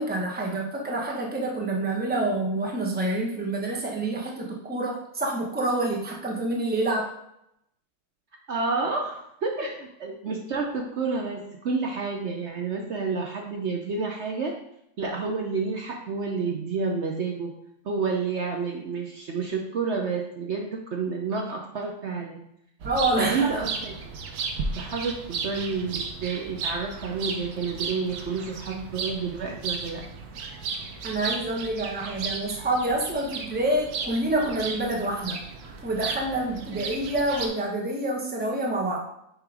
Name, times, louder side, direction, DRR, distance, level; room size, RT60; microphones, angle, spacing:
voice 1, 0.0-7.1 22.8-23.5 31.0-39.0, right 2 dB, 10° right, -1 dB, 0.9 m, -27 dB
voice 2, 8.5-9.7 10.0-14.5 15.0-17.5 17.8-22.4 23.2-24.2 24.8-30.0, right 4 dB, 55° right, 1 dB, 0.9 m, -29 dB
sound 1, 22.8-37.5, right 4 dB, 90° right, 1.3 m, -35 dB
6.6 x 3.7 x 4.8 m, 0.77 s
omnidirectional pair, 1.6 m